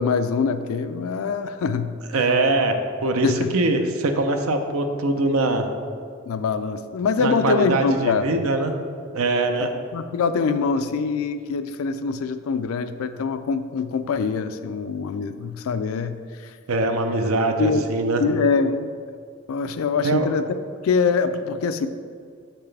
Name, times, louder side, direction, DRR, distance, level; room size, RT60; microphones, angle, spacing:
voice 1, 0.0-1.9 3.2-3.5 6.3-8.3 9.9-16.6 17.6-17.9 18.2-18.9 19.5-20.5 20.8-21.9, left 5 dB, 85° left, 11 dB, 0.4 m, -24 dB
voice 2, 2.1-2.8 3.0-5.7 7.2-8.7 9.1-9.7 16.7-18.2 20.0-20.3, right 2 dB, 90° right, 6 dB, 0.6 m, -22 dB
6.5 x 5.9 x 3.3 m, 2.2 s
head